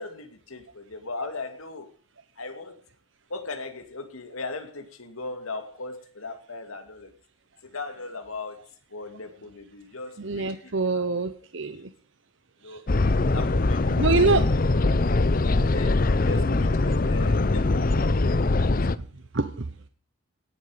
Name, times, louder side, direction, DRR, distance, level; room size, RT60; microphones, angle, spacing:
voice 1, 0.0-1.9 2.4-2.8 3.3-7.1 7.7-8.6 8.9-11.1 11.7-11.9 12.6-12.8 13.3-14.9 15.4-18.8, left 3 dB, 85° left, 8 dB, 2.4 m, -38 dB
voice 2, 10.2-11.9 12.6-12.8 14.0-14.5 19.3-19.7, right 3 dB, 60° right, 10 dB, 0.9 m, -25 dB
sound 1, 12.9-19.0, left 2 dB, 40° left, 0.6 m, -22 dB
17.5 x 11.0 x 5.1 m, 0.39 s
head